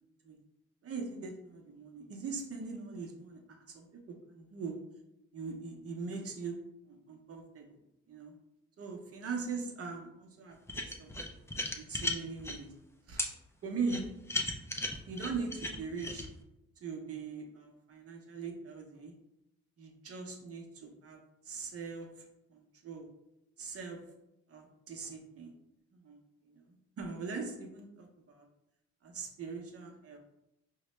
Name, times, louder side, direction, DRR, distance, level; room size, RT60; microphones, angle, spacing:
voice 1, 0.8-4.8 5.3-6.5 6.9-7.7 8.1-8.3 8.8-11.1 11.8-12.7 13.1-13.2 13.6-14.0 15.1-16.2 16.8-19.1 19.8-22.1 22.5-23.1 23.6-24.0 24.5-25.5 25.9-26.2 26.5-28.4 29.0-30.2, right 4 dB, 50° right, 2 dB, 0.8 m, -41 dB
sound 1, 10.7-12.6 13.2-13.3 13.9-16.3, left 2 dB, 10° left, 0.4 m, -35 dB
4.6 x 2.1 x 3.1 m, 0.87 s
cardioid pair, 90°, 30 cm